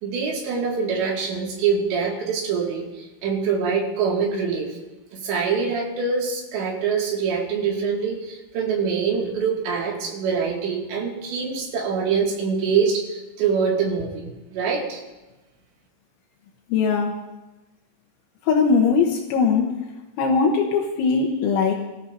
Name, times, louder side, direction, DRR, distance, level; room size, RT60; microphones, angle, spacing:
voice 1, 0.0-2.9 3.2-4.8 5.1-15.0, right 5 dB, 65° right, -2 dB, 4.3 m, -24 dB
voice 2, 16.7-17.1 18.4-19.7 20.2-21.7, left 5 dB, 75° left, 0 dB, 3.3 m, -20 dB
26.0 x 14.5 x 2.7 m, 1.1 s
omnidirectional pair, 5.7 m